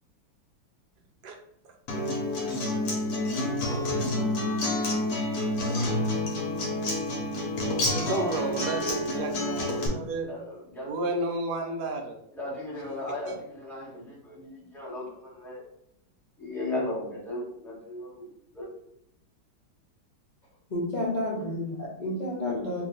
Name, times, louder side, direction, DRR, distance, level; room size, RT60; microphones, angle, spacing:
Acoustic guitar, 1.9-9.9, left 1 dB, 60° left, 1.2 m, -28 dB
voice 1, 7.9-10.4 10.8-12.2 13.3-13.4, right 2 dB, 70° right, 3 dB, 1.0 m, -32 dB
voice 2, 10.3-10.9 12.4-15.6 16.4-18.7, left 1 dB, ahead, -7 dB, 0.9 m, -36 dB
voice 3, 20.7-22.8, left 1 dB, 80° left, -7 dB, 0.4 m, -30 dB
3.0 x 2.5 x 3.7 m, 0.74 s
omnidirectional pair, 2.1 m